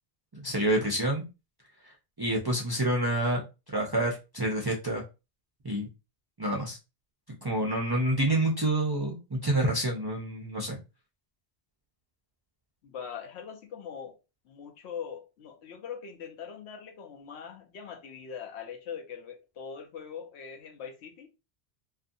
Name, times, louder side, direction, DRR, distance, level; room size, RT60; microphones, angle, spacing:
voice 1, 0.4-1.2 2.2-3.4 3.7-5.0 5.6-5.9 6.4-6.8 7.4-10.8, right 1 dB, 35° right, 0.4 m, -28 dB
voice 2, 12.8-14.2 14.5-21.3, left 7 dB, 85° left, 0.9 m, -42 dB
2.6 x 2.4 x 2.5 m
omnidirectional pair, 1.1 m